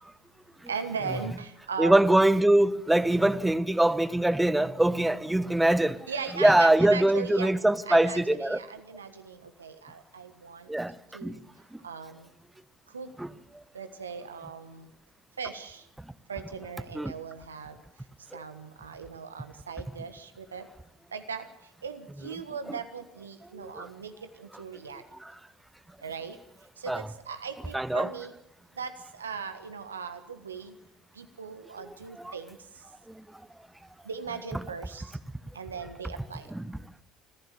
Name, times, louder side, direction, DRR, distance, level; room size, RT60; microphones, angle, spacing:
voice 1, 0.7-1.9 6.1-7.5 7.9-10.7 11.1-11.4 11.8-12.3 12.9-13.1 13.7-14.9 15.4-15.8 16.3-17.7 18.3-20.7 21.1-21.5 21.8-25.0 26.0-26.4 26.8-28.3 28.8-30.7 31.2-32.6 34.0-35.1 35.5-36.5, right 6 dB, 85° right, 1.5 m, -38 dB
voice 2, 1.8-6.0 6.4-8.6 10.7-10.9 11.2-11.3 13.2-13.3 16.9-17.1 18.3-18.4 23.5-23.9 24.5-24.6 25.2-25.3 26.9-27.1 27.7-28.1 31.8-32.3 34.5-34.6 36.5-36.8, right 1 dB, 10° right, 1.1 m, -23 dB
25.0 x 15.0 x 6.9 m
figure-of-eight pair, 60°, 0 cm